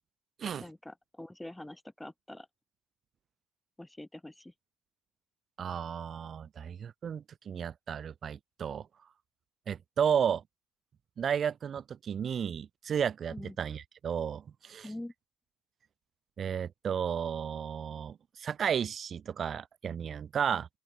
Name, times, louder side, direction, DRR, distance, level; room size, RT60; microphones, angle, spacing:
voice 1, 0.5-2.5 3.8-4.5 13.3-13.6 14.8-15.1, left 1 dB, 5° left, 6.8 m, -44 dB
voice 2, 5.6-8.9 9.7-10.4 11.2-14.9 16.4-20.7, right 8 dB, 35° right, 2.2 m, -33 dB
open air
figure-of-eight pair, 60°, 0 cm